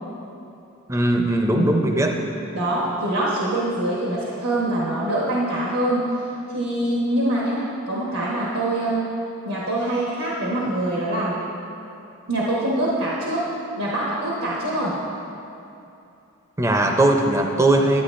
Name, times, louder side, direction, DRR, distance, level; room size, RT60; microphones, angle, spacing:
voice 1, 0.9-2.1 16.6-18.0, right 1 dB, 15° right, 3 dB, 0.5 m, -19 dB
voice 2, 2.5-6.1 6.5-9.1 9.4-11.4 12.3-15.0, right 1 dB, 85° right, -6 dB, 1.1 m, -24 dB
11.5 x 8.9 x 2.5 m, 2.7 s
head